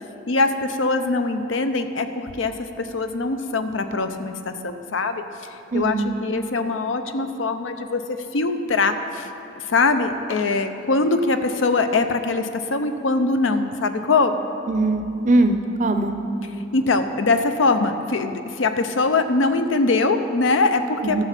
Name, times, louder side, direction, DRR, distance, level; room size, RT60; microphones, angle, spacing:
voice 1, 0.3-5.2 5.5-9.3 9.6-14.4 16.7-21.2, left 3 dB, 75° left, 8 dB, 0.6 m, -22 dB
voice 2, 5.7-6.2 14.7-16.1 21.0-21.2, right 2 dB, 40° right, 7 dB, 0.6 m, -21 dB
12.5 x 7.2 x 5.9 m, 2.8 s
head